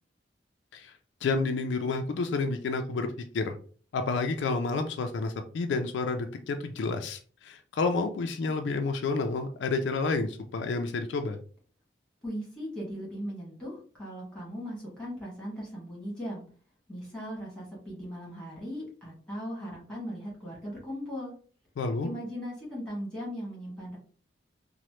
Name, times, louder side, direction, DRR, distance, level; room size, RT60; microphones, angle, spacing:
voice 1, 1.2-3.1 3.3-3.6 3.9-11.4 21.8-22.1, left 3 dB, 75° left, 6 dB, 0.3 m, -30 dB
voice 2, 12.2-16.4 16.9-21.3 22.0-24.0, equal, 5° left, -5 dB, 1.3 m, -38 dB
3.0 x 2.1 x 3.0 m, 0.43 s
head